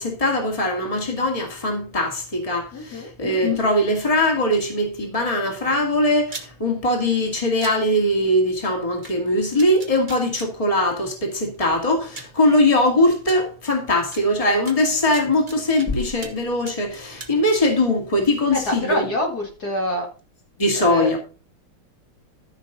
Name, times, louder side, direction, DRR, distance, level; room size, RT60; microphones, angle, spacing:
voice 1, 0.0-19.1 20.6-21.2, left 1 dB, 15° left, 2.4 m, -21 dB
voice 2, 2.7-3.1 18.5-20.1 20.7-21.2, left 1 dB, 45° left, 2.3 m, -26 dB
sound 1, 6.3-6.5 7.6-7.7 9.0-9.1 9.6-10.5 11.5-11.6 12.2-12.4 13.3-13.4 14.1-14.2 14.7-15.9 16.2-16.4 16.7-17.3, right 3 dB, 30° right, 1.2 m, -37 dB
14.0 x 6.0 x 4.0 m
omnidirectional pair, 2.4 m